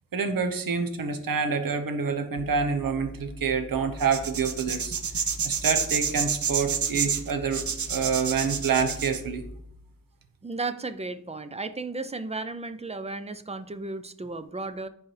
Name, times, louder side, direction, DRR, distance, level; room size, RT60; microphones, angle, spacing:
voice 1, 0.1-4.9 5.4-9.4, right 5 dB, 80° right, 7 dB, 0.9 m, -27 dB
sound 1, 2.4-9.7, left 1 dB, 30° left, 1.7 m, -43 dB
sound 2, 4.0-9.2, right 7 dB, 60° right, 0.7 m, -28 dB
voice 2, 10.4-14.9, right 3 dB, 20° right, 11 dB, 0.3 m, -34 dB
11.0 x 4.7 x 3.2 m, 0.72 s
wide cardioid pair, 160°, 34 cm